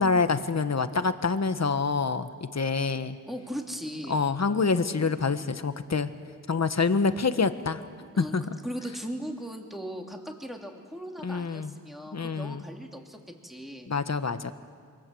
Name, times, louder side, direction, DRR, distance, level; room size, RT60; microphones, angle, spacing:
voice 1, 0.0-3.2 4.1-6.1 6.5-7.8 8.2-8.4 11.2-11.7 12.1-12.6 13.9-14.5, left 4 dB, 50° left, 10 dB, 1.3 m, -26 dB
voice 2, 3.3-4.2 4.9-5.1 8.1-13.2 13.4-13.9, equal, ahead, 2 dB, 3.0 m, -38 dB
26.5 x 24.0 x 7.8 m, 2.1 s
wide cardioid pair, 85°, 35 cm